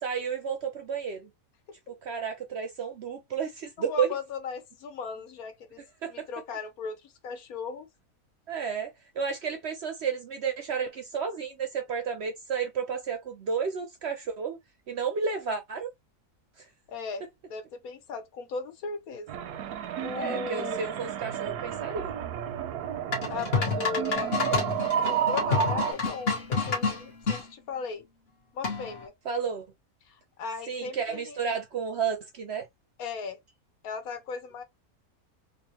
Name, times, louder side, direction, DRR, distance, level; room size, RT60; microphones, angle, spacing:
voice 1, 0.0-1.3 1.9-4.2 6.0-6.3 8.5-14.6 14.9-15.9 16.6-16.7 20.1-22.1 29.2-29.7 30.7-32.7, right 6 dB, 60° right, 0.7 m, -32 dB
voice 2, 3.9-5.8 6.1-7.9 16.9-17.2 17.5-19.3 20.0-20.8 23.3-24.6 25.0-28.0 28.5-29.1 30.4-31.4 33.0-33.4 33.8-34.6, left 5 dB, 70° left, 1.3 m, -37 dB
sound 1, 19.3-25.9, right 9 dB, 85° right, 1.1 m, -31 dB
sound 2, 23.1-27.4 28.6-29.1, left 4 dB, 45° left, 1.4 m, -29 dB
3.7 x 2.5 x 2.8 m
omnidirectional pair, 1.6 m